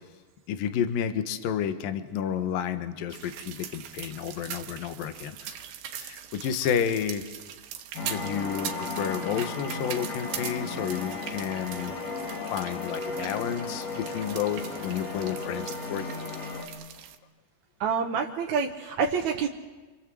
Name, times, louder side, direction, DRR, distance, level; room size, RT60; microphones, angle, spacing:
voice 1, 0.5-5.6 6.0-7.3 8.0-11.9 12.5-16.1, left 8 dB, 70° left, 9 dB, 2.9 m, -31 dB
sound 1, 3.1-17.2, right 10 dB, 80° right, 3.0 m, -41 dB
sound 2, 8.0-16.7, left 3 dB, 90° left, 5.1 m, -35 dB
voice 2, 17.8-19.5, right 6 dB, 60° right, 0 dB, 2.3 m, -27 dB
28.0 x 26.0 x 7.8 m, 1.3 s
omnidirectional pair, 4.3 m